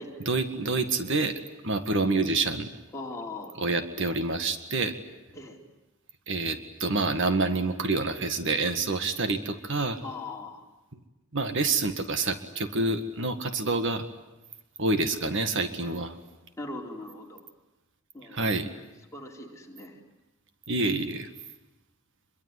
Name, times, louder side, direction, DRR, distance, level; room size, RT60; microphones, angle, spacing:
voice 1, 0.3-2.7 3.6-5.0 6.3-10.0 11.3-14.1 14.8-16.1 18.3-18.7 20.7-21.3, right 3 dB, 55° right, 9 dB, 1.8 m, -27 dB
voice 2, 2.9-3.6 5.3-5.6 10.0-10.7 16.6-17.4 18.1-18.5 19.1-20.0, left 2 dB, 15° left, 0 dB, 4.1 m, -40 dB
26.0 x 23.0 x 9.9 m, 1.0 s
head